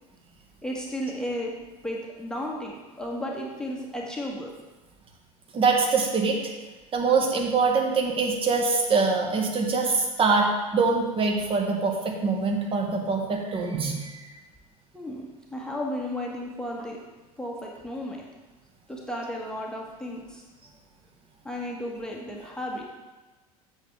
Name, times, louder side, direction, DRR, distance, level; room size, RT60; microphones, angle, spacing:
voice 1, 0.6-1.5 1.8-4.5 14.9-17.0 17.4-18.3 18.9-20.4 21.4-22.9, left 1 dB, 5° left, -2 dB, 1.4 m, -34 dB
voice 2, 5.5-6.5 6.9-14.3, right 4 dB, 30° right, 1 dB, 1.6 m, -24 dB
8.1 x 7.7 x 3.5 m, 1.2 s
figure-of-eight pair, 75°, 19 cm